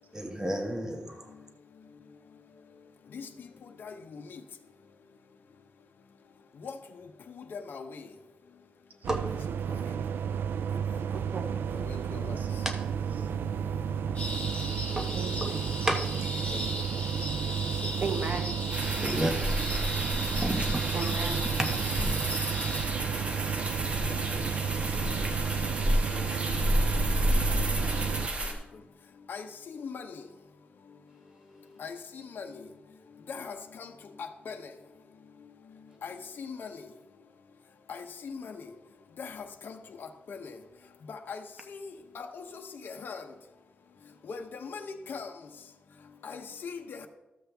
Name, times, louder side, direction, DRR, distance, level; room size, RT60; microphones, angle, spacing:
voice 1, 0.1-1.3 9.1-9.2 15.8-16.0 19.0-19.3 20.4-20.8 21.6-22.4, right 1 dB, 15° right, 3 dB, 1.1 m, -31 dB
voice 2, 3.8-4.4 6.6-6.8 7.4-8.0 11.7-12.4 16.5-16.6 17.8-17.9 24.1-24.7 26.1-26.6 29.3-30.2 31.8-32.0 32.3-32.6 33.3-33.9 34.2-34.6 36.0-36.9 37.9-38.7 39.2-40.5 41.1-41.4 41.7-43.3 44.3-45.3 46.2-47.1, left 5 dB, 70° left, 5 dB, 0.7 m, -41 dB
sound 1, 9.0-28.3, right 7 dB, 90° right, 0.3 m, -32 dB
voice 3, 11.1-11.6 12.3-12.6 13.2-13.3 15.1-15.6 16.4-16.6 18.0-18.5 20.9-21.4 25.1-25.6, right 4 dB, 50° right, 6 dB, 1.1 m, -37 dB
sound 2, 14.2-22.8, equal, 40° left, 3.6 m, -37 dB
sound 3, 18.7-28.5, right 1 dB, 35° right, 1.5 m, -30 dB
12.5 x 7.4 x 3.4 m, 1.0 s
wide cardioid pair, 120°, 4 cm